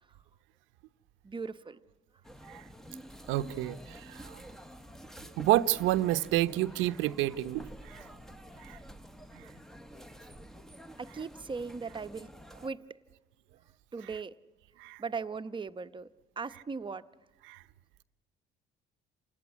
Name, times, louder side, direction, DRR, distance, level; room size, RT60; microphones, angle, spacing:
voice 1, 1.2-1.8 11.0-12.3 12.6-12.8 13.9-14.3 15.0-16.1 16.4-17.1, right 5 dB, 25° right, 0.9 m, -38 dB
sound 1, 2.2-12.7, equal, ahead, 1.0 m, -49 dB
voice 2, 3.3-4.4 5.4-8.0 8.6-8.8 14.8-15.0 17.5-17.6, right 15 dB, 80° right, 0.8 m, -29 dB
27.5 x 18.0 x 9.8 m
supercardioid pair, 85°, 20 cm